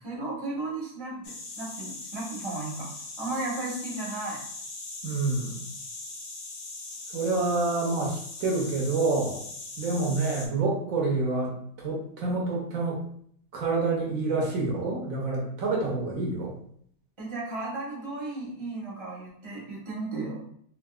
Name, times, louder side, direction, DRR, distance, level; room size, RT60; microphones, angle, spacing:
voice 1, 0.0-2.9 3.2-4.4 17.2-20.4, right 2 dB, 25° right, -4 dB, 0.8 m, -34 dB
sound 1, 1.2-10.5, left 3 dB, 60° left, 0.5 m, -40 dB
voice 2, 5.0-5.7 7.1-9.4 9.8-13.0 13.5-16.6, right 3 dB, 70° right, -2 dB, 1.1 m, -28 dB
3.6 x 2.6 x 2.3 m, 0.64 s
omnidirectional pair, 1.6 m